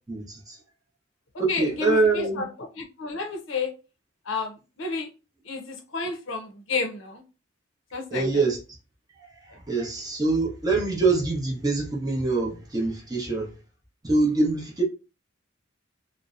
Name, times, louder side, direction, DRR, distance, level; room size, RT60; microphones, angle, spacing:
voice 1, 0.1-0.6 1.4-2.4 8.1-8.6 9.2-13.5 14.0-14.8, right 3 dB, 20° right, 0.7 m, -25 dB
voice 2, 1.5-2.5 2.8-3.7 4.3-5.1 5.5-7.2 7.9-8.2, left 4 dB, 70° left, 0.6 m, -31 dB
2.6 x 2.0 x 2.3 m
head